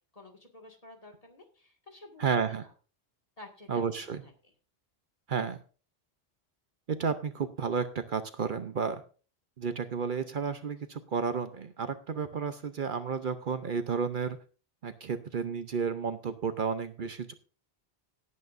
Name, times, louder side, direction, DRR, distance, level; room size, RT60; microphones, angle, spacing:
voice 1, 0.1-2.7 3.4-3.9 4.2-4.5, left 2 dB, 35° left, 2 dB, 2.1 m, -52 dB
voice 2, 2.2-2.6 3.7-4.2 5.3-5.6 6.9-9.0 9.6-14.4 14.8-17.3, right 6 dB, 55° right, 10 dB, 0.9 m, -32 dB
17.5 x 8.6 x 2.6 m, 0.36 s
omnidirectional pair, 1.0 m